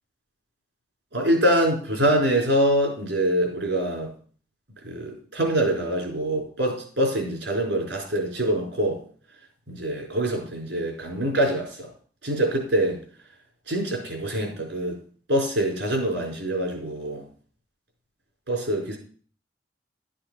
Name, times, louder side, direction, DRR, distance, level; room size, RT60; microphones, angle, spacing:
voice 1, 1.1-4.1 4.8-9.0 9.7-11.9 12.2-13.0 13.7-15.0 15.3-17.2 18.5-19.0, right 1 dB, 85° right, 1 dB, 4.9 m, -24 dB
13.0 x 7.7 x 6.0 m, 0.43 s
head